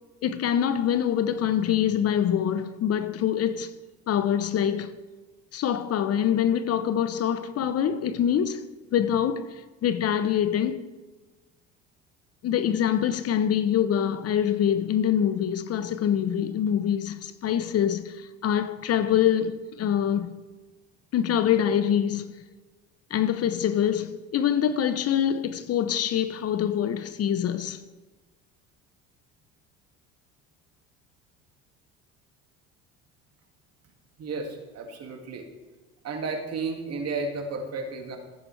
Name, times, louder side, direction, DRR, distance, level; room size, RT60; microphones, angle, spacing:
voice 1, 0.2-3.7 4.1-5.0 5.5-8.7 8.9-10.9 12.4-20.4 21.1-22.3 23.1-27.8, left 9 dB, 45° left, 0.8 m, -25 dB
voice 2, 34.2-35.5 36.0-38.2, right 3 dB, 50° right, 2.1 m, -33 dB
15.5 x 8.8 x 3.3 m
hypercardioid pair, 70°, 33 cm